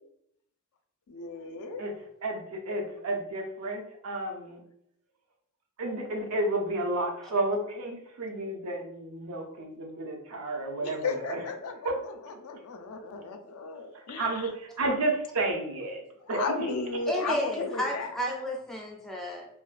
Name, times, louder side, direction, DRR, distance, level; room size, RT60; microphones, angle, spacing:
voice 1, 1.1-1.8 10.8-14.5 16.2-18.1, left 4 dB, 75° left, 5 dB, 0.3 m, -35 dB
voice 2, 2.2-4.6 5.8-11.4 11.8-11.9 14.2-16.0 16.3-16.6, right 2 dB, 90° right, 2 dB, 0.5 m, -31 dB
voice 3, 17.1-19.5, equal, ahead, -2 dB, 0.3 m, -32 dB
2.5 x 2.1 x 2.4 m, 0.75 s
head